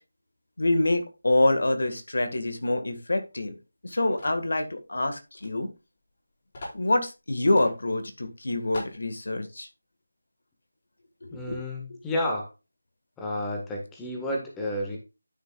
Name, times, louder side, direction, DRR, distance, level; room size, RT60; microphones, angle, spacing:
voice 1, 0.6-3.6 3.8-5.7 6.7-9.7 11.2-11.6 11.9-12.0, left 2 dB, 60° left, 8 dB, 1.8 m, -26 dB
sound 1, 4.2-4.5 5.4-5.5 5.8-5.9 6.5-6.8 7.6-7.7 8.2-8.3 8.7-9.0, left 1 dB, 40° left, 4.9 m, -40 dB
voice 2, 11.3-12.5 13.2-15.0, left 1 dB, 5° left, 0 dB, 1.5 m, -31 dB
12.0 x 6.6 x 2.4 m, 0.27 s
figure-of-eight pair, 165°, 0 cm